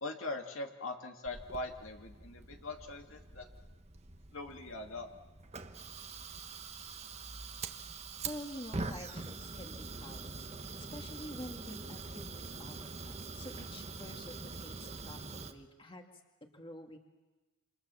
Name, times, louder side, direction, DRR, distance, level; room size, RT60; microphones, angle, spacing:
voice 1, 0.0-3.5 4.3-5.1, left 2 dB, 70° left, 3 dB, 2.4 m, -41 dB
Fire, 1.3-15.5, right 3 dB, 30° right, 1.3 m, -44 dB
voice 2, 8.2-16.1 16.4-17.0, left 1 dB, 25° left, 3 dB, 2.3 m, -48 dB
28.0 x 27.5 x 7.1 m, 1.2 s
head